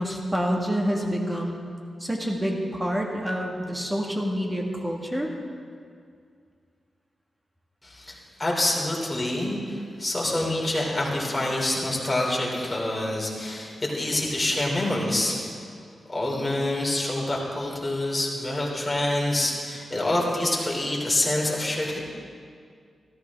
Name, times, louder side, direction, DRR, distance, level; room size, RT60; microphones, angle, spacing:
voice 1, 0.0-1.6 2.0-5.3, equal, 15° right, 1 dB, 1.7 m, -27 dB
voice 2, 7.8-15.5 16.1-22.0, left 1 dB, 20° left, -3 dB, 2.8 m, -26 dB
13.5 x 13.5 x 3.5 m, 2.2 s
cardioid pair, 85°, 0 cm